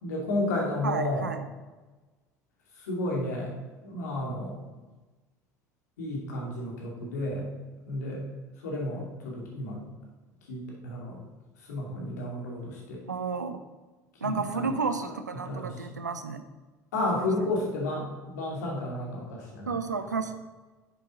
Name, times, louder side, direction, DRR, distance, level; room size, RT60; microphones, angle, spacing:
voice 1, 0.0-1.3 2.7-3.6 3.8-4.6 6.0-7.5 7.9-8.2 8.6-9.8 10.5-11.2 11.6-13.0 14.2-14.8 15.3-15.9 16.9-19.8, left 1 dB, 70° left, -2 dB, 2.6 m, -32 dB
voice 2, 0.8-1.4 13.1-13.6 14.2-16.4 17.2-17.3 19.7-20.3, right 4 dB, 85° right, 9 dB, 0.7 m, -31 dB
9.3 x 7.3 x 4.1 m, 1.2 s
figure-of-eight pair, 65°, 9 cm